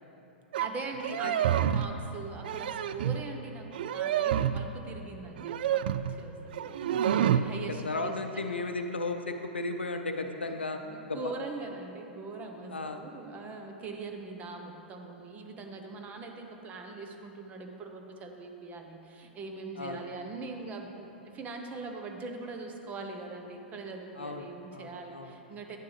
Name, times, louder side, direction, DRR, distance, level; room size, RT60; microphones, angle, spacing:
sound 1, 0.5-0.7 1.0-1.9 2.4-3.3 3.7-4.7 5.4-6.2 6.5-7.5, right 10 dB, 55° right, 0.3 m, -28 dB
voice 1, 0.6-8.5 10.5-10.6 10.8-25.8, right 3 dB, 25° right, 3 dB, 0.9 m, -42 dB
voice 2, 7.1-10.8 11.1-11.3 12.7-13.0 19.8-20.0 24.2-25.4, left 3 dB, 80° left, 5 dB, 0.6 m, -35 dB
10.5 x 10.5 x 3.3 m, 3.0 s
figure-of-eight pair, 100°, 6 cm